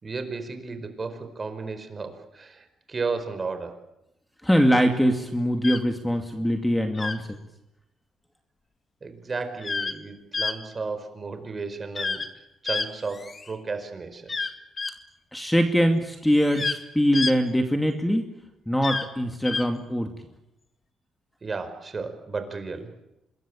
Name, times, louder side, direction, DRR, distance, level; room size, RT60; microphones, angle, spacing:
voice 1, 0.0-3.8 9.0-14.4 21.4-22.9, right 4 dB, 35° right, 8 dB, 4.7 m, -34 dB
voice 2, 4.4-7.4 15.3-18.3 18.7-20.1, equal, 5° left, 5 dB, 2.4 m, -23 dB
sound 1, 5.6-5.8 6.9-7.2 9.6-9.9 10.3-10.5 11.9-12.3 12.6-13.5 14.3-14.9 16.3-16.8 17.1-17.3 18.8-19.1 19.4-19.7, left 4 dB, 30° left, 2.1 m, -29 dB
26.0 x 21.5 x 8.9 m, 0.89 s
cardioid pair, 90°, 0 cm